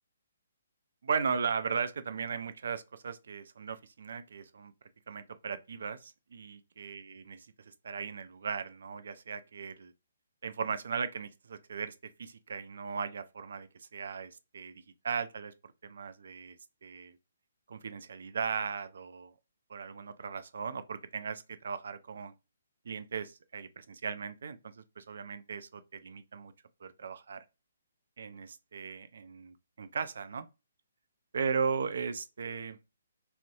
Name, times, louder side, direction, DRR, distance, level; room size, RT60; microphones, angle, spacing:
voice 1, 1.0-4.7 5.1-7.4 7.7-9.9 10.4-16.6 16.8-17.2 17.7-19.3 19.7-22.3 22.9-26.5 26.8-27.4 28.2-30.5 31.3-32.8, right 6 dB, 60° right, 0.3 m, -37 dB
2.6 x 2.1 x 2.5 m
figure-of-eight pair, 135°, 0 cm